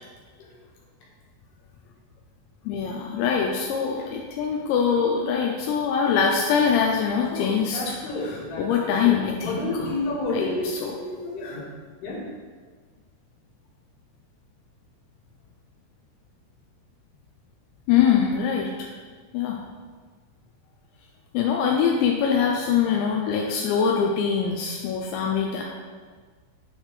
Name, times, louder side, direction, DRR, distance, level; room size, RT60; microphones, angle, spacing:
voice 1, 2.7-7.9 8.6-9.9 10.3-10.5 10.8-10.9 11.5-11.6 17.9-18.9 19.3-19.6 21.3-25.6, left 7 dB, 85° left, 0 dB, 2.5 m, -23 dB
voice 2, 7.3-11.6 12.0-12.2, left 2 dB, 65° left, -5 dB, 3.2 m, -31 dB
10.5 x 4.4 x 3.3 m, 1.5 s
omnidirectional pair, 5.7 m